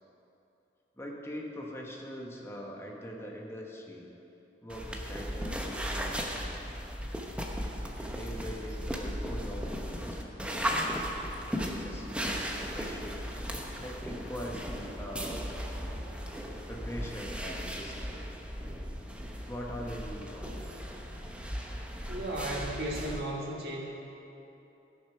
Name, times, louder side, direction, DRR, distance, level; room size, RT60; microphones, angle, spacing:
voice 1, 0.9-4.1 4.6-6.8 7.8-10.9 11.5-13.2 13.8-15.5 16.7-18.3 19.5-20.7, equal, 15° left, -1 dB, 1.3 m, -42 dB
sound 1, 4.7-23.2, equal, 5° right, 0.8 m, -36 dB
voice 2, 22.1-23.9, right 1 dB, 60° right, -3 dB, 2.0 m, -35 dB
14.5 x 6.7 x 5.8 m, 2.9 s
head